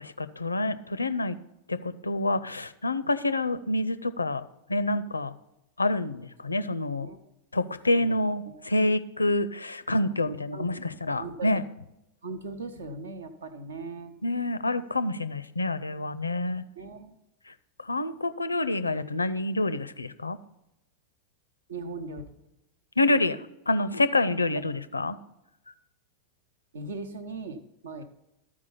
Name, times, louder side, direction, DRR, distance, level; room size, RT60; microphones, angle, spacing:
voice 1, 0.0-1.3 1.7-1.8 2.0-4.4 4.7-5.3 5.8-7.1 7.5-10.8 11.1-11.6 14.2-16.6 17.9-20.4 23.0-23.4 23.7-25.2, left 2 dB, 80° left, 14 dB, 0.4 m, -27 dB
voice 2, 7.0-7.3 7.9-8.2 8.4-8.7 10.5-10.7 11.2-11.6 12.2-14.1 16.5-17.2 21.7-22.3 24.7-24.8 26.7-28.0, right 3 dB, 70° right, 10 dB, 0.9 m, -39 dB
13.0 x 4.8 x 5.7 m, 0.88 s
figure-of-eight pair, 90°, 0 cm